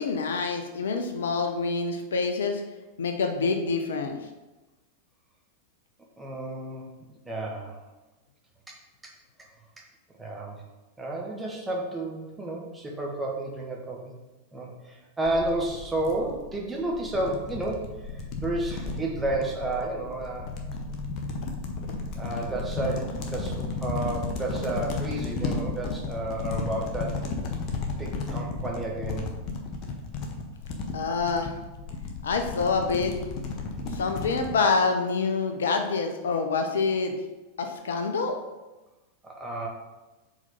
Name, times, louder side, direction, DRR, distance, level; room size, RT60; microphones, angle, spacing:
voice 1, 0.0-2.6 3.0-4.2 30.9-31.5 32.2-33.1 33.9-37.1 37.6-38.4, left 4 dB, 65° left, 6 dB, 0.6 m, -26 dB
voice 2, 6.2-6.9 7.3-7.8 8.7-8.8 9.0-9.1 10.2-10.6 11.0-14.1 14.5-20.5 22.2-27.2 28.0-29.3 39.2-39.7, right 2 dB, 10° right, -2 dB, 1.3 m, -31 dB
sound 1, 15.2-34.6, left 3 dB, 40° left, 0.9 m, -34 dB
4.9 x 4.1 x 5.1 m, 1.1 s
figure-of-eight pair, 90°, 0 cm